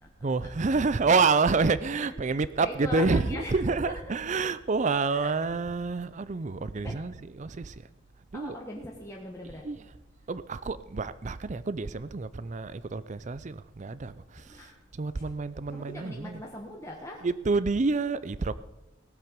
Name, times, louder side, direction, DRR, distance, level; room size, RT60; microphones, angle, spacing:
voice 1, 0.2-7.9 8.3-8.6 9.6-9.9 10.3-16.4 17.2-18.5, right 4 dB, 40° right, 0.5 m, -28 dB
voice 2, 2.6-3.9 5.1-5.3 6.8-7.0 8.3-9.7 14.4-14.8 15.7-17.2, left 1 dB, 15° left, 1.2 m, -40 dB
18.0 x 7.5 x 5.3 m
head